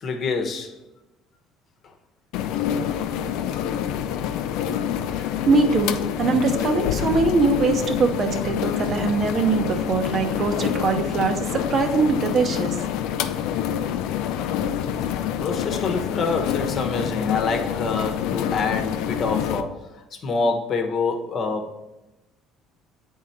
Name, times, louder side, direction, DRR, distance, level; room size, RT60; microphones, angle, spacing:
voice 1, 0.0-0.7 15.4-21.8, left 4 dB, 45° left, 5 dB, 1.0 m, -26 dB
dish washer rinsing, 2.3-19.6, left 9 dB, 80° left, 0.4 m, -27 dB
voice 2, 5.4-12.8, right 4 dB, 40° right, 6 dB, 0.9 m, -22 dB
8.3 x 3.7 x 4.3 m, 0.98 s
cardioid pair, 110°, 0 cm